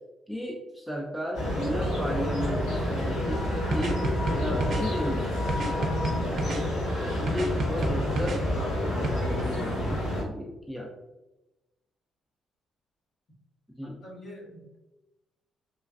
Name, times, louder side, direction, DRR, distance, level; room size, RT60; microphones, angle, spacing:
voice 1, 0.3-5.6 7.0-10.9 13.7-14.0, equal, ahead, -1 dB, 0.4 m, -35 dB
sound 1, 1.3-10.2, left 1 dB, 85° left, 1.3 m, -29 dB
sound 2, 3.7-4.8 5.5-6.6 7.3-8.4 9.0-9.1, right 2 dB, 60° right, 0.4 m, -30 dB
voice 2, 13.8-14.8, equal, 45° left, -4 dB, 1.1 m, -46 dB
3.1 x 2.3 x 2.4 m, 1.0 s
cardioid pair, 90°, 0 cm